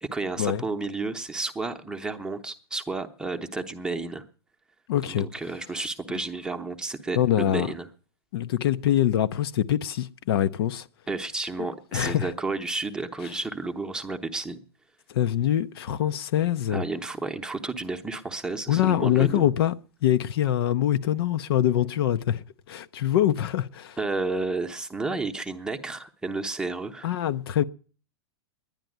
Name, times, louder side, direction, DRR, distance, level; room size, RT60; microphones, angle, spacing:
voice 1, 0.0-4.2 5.1-7.9 11.1-14.6 16.7-19.5 24.0-27.1, right 3 dB, 5° right, 0.8 m, -31 dB
voice 2, 4.9-5.3 7.2-7.7 8.3-10.9 11.9-12.3 15.1-16.8 18.7-19.7 20.0-24.0 27.0-27.6, left 11 dB, 65° left, 0.7 m, -24 dB
11.0 x 10.5 x 9.2 m
supercardioid pair, 150°, 14 cm